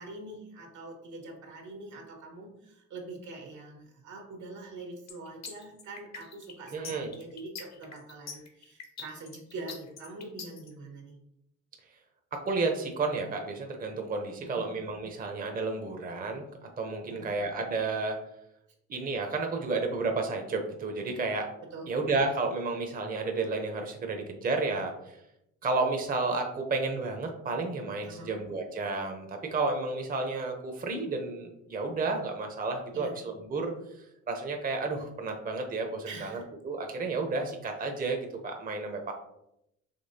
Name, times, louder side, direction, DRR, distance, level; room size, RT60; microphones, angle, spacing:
voice 1, 0.0-11.2 14.4-14.7 17.1-17.4 21.7-21.9 28.0-28.4 32.9-33.1 36.0-36.5, right 2 dB, 75° right, 2 dB, 1.3 m, -44 dB
sound 1, 5.1-10.7, left 5 dB, 60° left, 0.9 m, -43 dB
voice 2, 6.7-7.1 12.3-16.4 16.8-18.2 18.9-21.5 21.9-25.2 25.6-33.7 34.3-38.2 38.4-39.1, right 3 dB, 30° right, 3 dB, 0.7 m, -31 dB
5.2 x 3.1 x 2.7 m, 0.82 s
cardioid pair, 90°, 30 cm